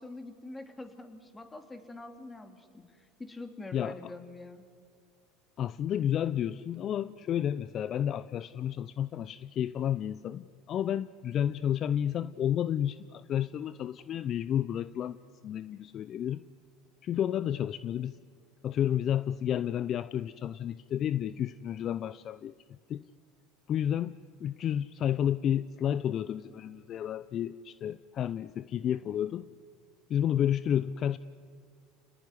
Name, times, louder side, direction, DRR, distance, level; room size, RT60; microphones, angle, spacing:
voice 1, 0.0-4.6, left 2 dB, 15° left, 7 dB, 3.3 m, -45 dB
voice 2, 3.7-4.1 5.6-15.2 15.4-16.4 17.0-18.2 18.6-22.6 22.9-23.1 23.7-29.5 30.1-31.2, left 10 dB, 45° left, 16 dB, 0.6 m, -31 dB
29.5 x 19.5 x 9.8 m, 2.2 s
hypercardioid pair, 85°, 0 cm